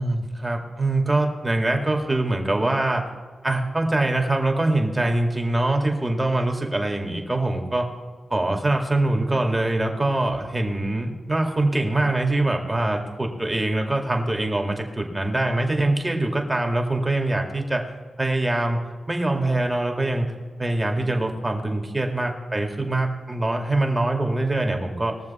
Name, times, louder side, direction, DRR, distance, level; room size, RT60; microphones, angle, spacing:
voice 1, 0.0-3.1 3.4-7.9 8.3-17.8 18.2-20.3 20.6-25.2, right 2 dB, 20° right, 2 dB, 2.1 m, -23 dB
21.0 x 7.1 x 4.3 m, 1.5 s
cardioid pair, 65°, 0 cm